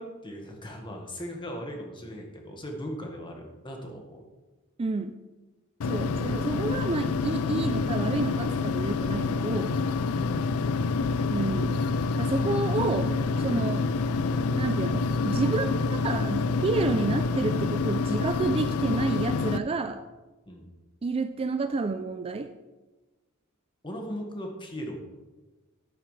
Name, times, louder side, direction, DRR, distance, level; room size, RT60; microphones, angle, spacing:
voice 1, 0.0-4.2 20.5-20.7 23.8-25.0, equal, 25° left, 1 dB, 1.7 m, -39 dB
voice 2, 4.8-5.2 5.8-9.8 11.3-11.8 12.2-13.9 14.6-20.0 21.0-22.5, right 3 dB, 25° right, 9 dB, 0.4 m, -30 dB
sound 1, 5.8-19.6, left 4 dB, 85° left, 0.4 m, -27 dB
11.0 x 9.7 x 3.3 m, 1.2 s
head